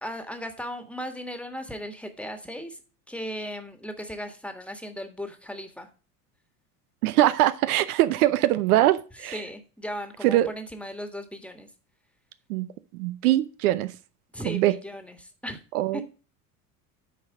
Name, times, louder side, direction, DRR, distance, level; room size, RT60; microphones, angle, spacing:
voice 1, 0.0-2.8 3.1-5.9 9.3-11.7 14.3-15.6 15.9-16.0, equal, 5° left, 7 dB, 1.6 m, -37 dB
voice 2, 7.0-9.4 10.2-10.5 12.5-13.9 14.5-14.7 15.7-16.0, right 15 dB, 70° right, 14 dB, 0.7 m, -22 dB
9.4 x 4.6 x 4.8 m, 0.35 s
hypercardioid pair, 80°, 46 cm